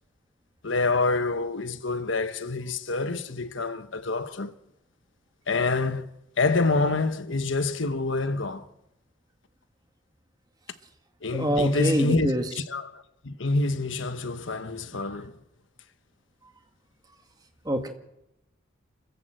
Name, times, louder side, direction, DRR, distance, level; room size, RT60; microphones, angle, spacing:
voice 1, 0.6-4.5 5.5-6.1 6.4-8.7 11.2-15.3, left 3 dB, 75° left, 1.2 m, -27 dB
voice 2, 11.3-12.4 17.7-17.9, right 1 dB, 20° right, 1.9 m, -25 dB
27.0 x 14.5 x 7.7 m
head